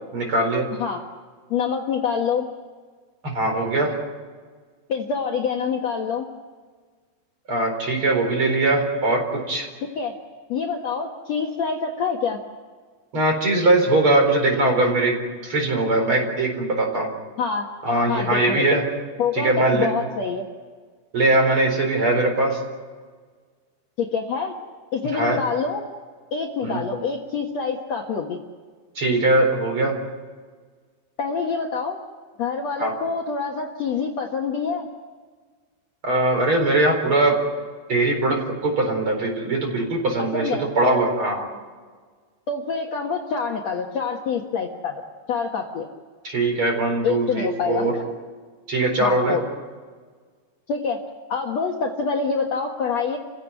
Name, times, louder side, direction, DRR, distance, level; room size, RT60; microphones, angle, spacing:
voice 1, 0.1-0.7 3.2-3.9 7.5-9.7 13.1-15.1 15.4-17.1 17.8-18.8 19.3-19.9 21.1-22.6 25.1-25.4 26.6-26.8 28.9-29.9 32.8-32.9 36.0-37.3 37.9-38.4 38.6-41.5 46.2-47.9 48.7-49.4, right 2 dB, 30° right, 3 dB, 4.9 m, -21 dB
voice 2, 1.5-2.5 4.9-6.3 10.0-10.1 10.5-12.4 17.4-17.7 18.1-18.6 19.2-20.4 24.0-24.5 24.9-25.8 26.3-28.4 31.2-32.0 32.4-34.9 40.2-40.7 42.5-45.0 45.3-45.9 47.0-47.8 49.0-49.4 50.7-51.0 51.3-53.2, left 5 dB, 55° left, 1 dB, 2.2 m, -26 dB
29.5 x 16.0 x 9.3 m, 1.5 s
omnidirectional pair, 4.7 m